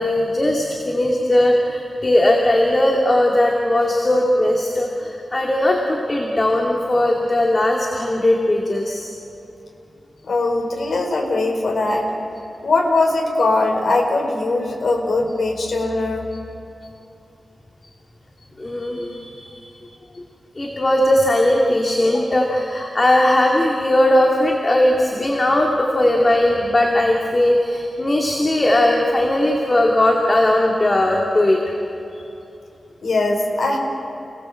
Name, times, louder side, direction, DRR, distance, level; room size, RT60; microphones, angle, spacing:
voice 1, 0.0-9.1 18.6-19.8 20.5-31.7, left 1 dB, 30° left, 0 dB, 2.5 m, -18 dB
voice 2, 10.2-12.1 12.6-16.2 33.0-33.8, left 2 dB, 70° left, 1 dB, 4.4 m, -20 dB
29.5 x 20.0 x 7.7 m, 2.9 s
wide cardioid pair, 145°, 0 cm